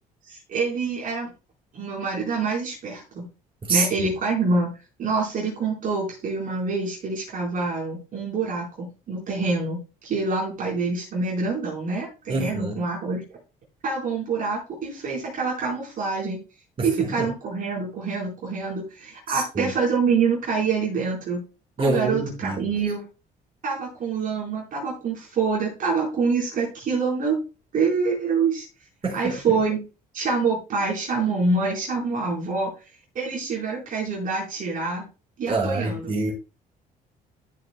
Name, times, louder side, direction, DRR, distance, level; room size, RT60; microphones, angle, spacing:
voice 1, 0.3-1.3 1.7-3.3 3.7-4.7 5.0-13.2 13.8-16.4 16.8-21.4 21.8-23.0 23.6-27.4 27.7-28.7 29.1-29.8 30.1-32.7 33.1-35.0 35.4-36.1, right 4 dB, 55° right, 4.5 m, -26 dB
voice 2, 3.6-4.1 12.3-12.8 16.8-17.3 19.3-19.7 21.8-22.6 29.0-29.6 35.4-36.3, right 3 dB, 30° right, 5.3 m, -26 dB
14.0 x 7.6 x 2.3 m
cardioid pair, 110°, 17 cm